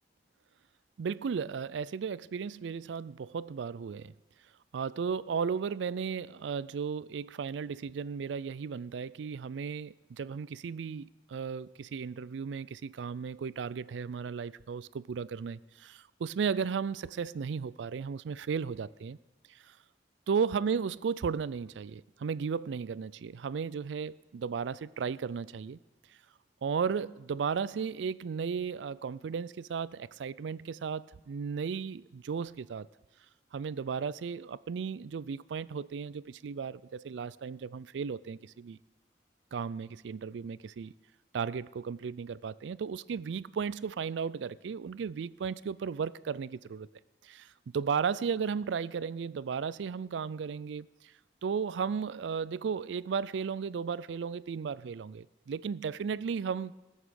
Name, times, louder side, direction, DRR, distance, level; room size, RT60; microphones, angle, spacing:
voice 1, 1.0-4.1 4.7-19.2 19.5-19.8 20.3-25.8 26.6-32.9 33.5-38.8 39.5-40.9 41.3-46.9 47.2-50.9 51.4-56.7, right 6 dB, 90° right, 0.4 m, -35 dB
20.0 x 7.2 x 6.4 m
head